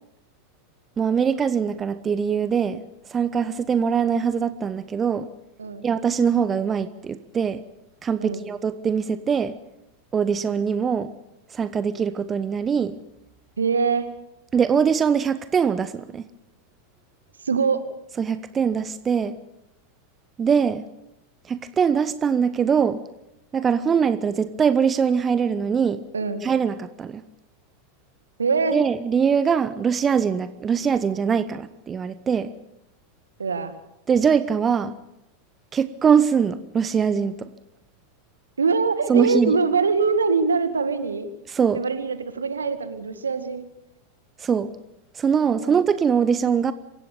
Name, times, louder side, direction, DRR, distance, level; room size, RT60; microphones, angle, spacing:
voice 1, 1.0-2.8 3.1-5.3 5.8-7.6 8.0-9.6 10.1-11.1 11.5-13.0 14.5-16.2 18.2-19.4 20.4-20.8 21.5-23.0 23.5-26.0 26.4-27.2 28.7-32.5 34.1-34.9 35.7-37.5 39.1-39.5 41.5-41.8 44.4-44.7 45.1-46.7, right 7 dB, 20° right, 14 dB, 0.9 m, -22 dB
voice 2, 13.6-14.1 17.4-17.8 26.1-26.4 28.4-28.8 33.4-33.7 38.6-41.3 41.7-43.6 45.4-45.7, right 4 dB, 75° right, 11 dB, 1.9 m, -23 dB
27.0 x 16.5 x 6.9 m, 0.87 s
figure-of-eight pair, 90°, 0 cm